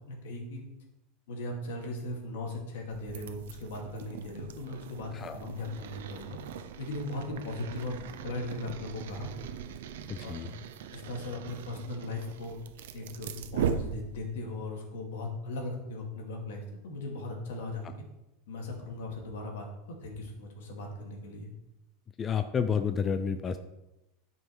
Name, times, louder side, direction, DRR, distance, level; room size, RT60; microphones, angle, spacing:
voice 1, 0.1-0.6 1.3-6.4 6.8-9.3 10.2-10.5 10.9-12.6 12.9-18.0 18.5-19.7 20.0-21.5, left 2 dB, 80° left, 0 dB, 2.5 m, -38 dB
sound 1, 2.9-14.5, right 7 dB, 85° right, 0.7 m, -40 dB
voice 2, 10.1-10.5 22.2-23.6, left 6 dB, 20° left, 10 dB, 0.4 m, -30 dB
10.5 x 5.5 x 4.8 m, 0.95 s
supercardioid pair, 160°, 0 cm